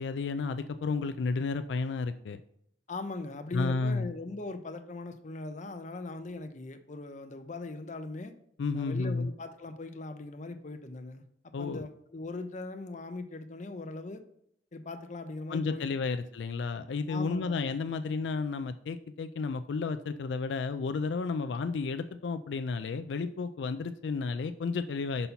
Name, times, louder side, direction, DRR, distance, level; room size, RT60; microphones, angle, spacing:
voice 1, 0.0-2.4 3.5-4.1 8.6-9.3 11.5-11.9 15.5-25.3, left 4 dB, 85° left, 10 dB, 0.4 m, -32 dB
voice 2, 2.9-8.3 8.7-14.2 14.7-16.2 17.1-17.6, left 2 dB, 45° left, 8 dB, 0.7 m, -40 dB
5.5 x 4.2 x 5.6 m, 0.71 s
head